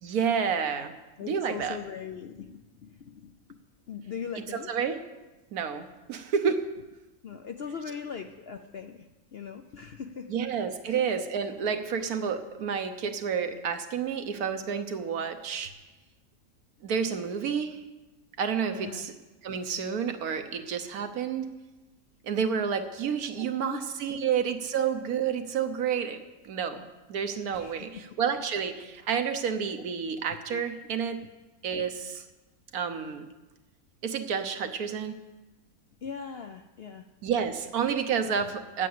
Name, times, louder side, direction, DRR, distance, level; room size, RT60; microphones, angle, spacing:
voice 1, 0.0-0.9 1.2-1.8 4.5-5.0 5.5-6.6 10.3-15.7 16.8-17.8 18.4-19.1 19.4-21.5 22.2-26.2 26.4-26.8 27.1-31.2 31.6-32.2 32.7-33.3 34.0-35.2 37.2-38.9, right 7 dB, 75° right, 7 dB, 1.4 m, -30 dB
voice 2, 1.2-3.3 3.9-4.7 7.2-10.4 10.9-11.0 18.7-19.1 23.0-23.8 24.1-24.3 27.6-28.0 29.7-29.9 30.5-30.6 36.0-37.1, left 7 dB, 65° left, 6 dB, 0.6 m, -40 dB
10.5 x 8.3 x 7.7 m, 1.1 s
omnidirectional pair, 1.6 m